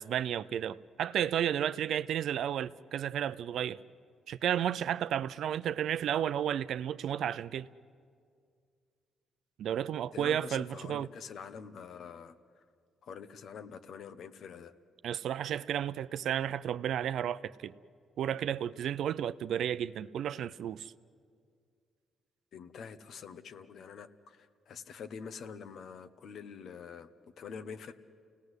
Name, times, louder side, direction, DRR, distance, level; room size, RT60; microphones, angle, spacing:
voice 1, 0.0-3.8 4.3-7.7 9.6-11.1 15.0-17.7 18.2-20.9, right 10 dB, 70° right, 0.6 m, -32 dB
voice 2, 10.1-12.6 13.0-14.7 22.5-27.1 27.4-27.9, left 6 dB, 65° left, 1.2 m, -46 dB
29.5 x 18.5 x 8.1 m
cardioid pair, 90°, 0 cm